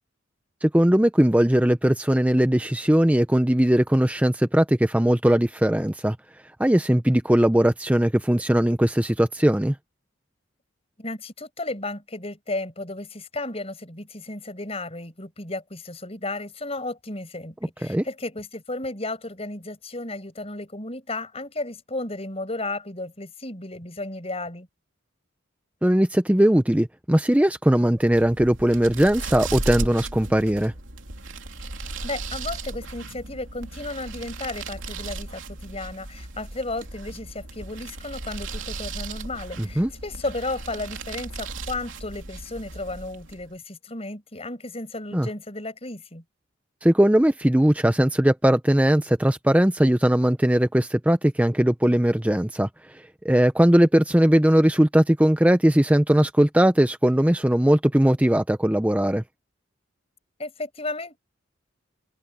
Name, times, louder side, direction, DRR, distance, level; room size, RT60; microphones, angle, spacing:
voice 1, 0.6-6.2 6.6-9.8 17.8-18.0 25.8-30.7 39.6-39.9 45.1-45.3 46.8-59.2, right 1 dB, 5° right, 0.6 m, -19 dB
voice 2, 11.0-24.7 32.0-46.2 60.4-61.2, left 2 dB, 30° left, 5.5 m, -34 dB
sound 1, 28.0-43.5, right 3 dB, 80° right, 3.1 m, -36 dB
head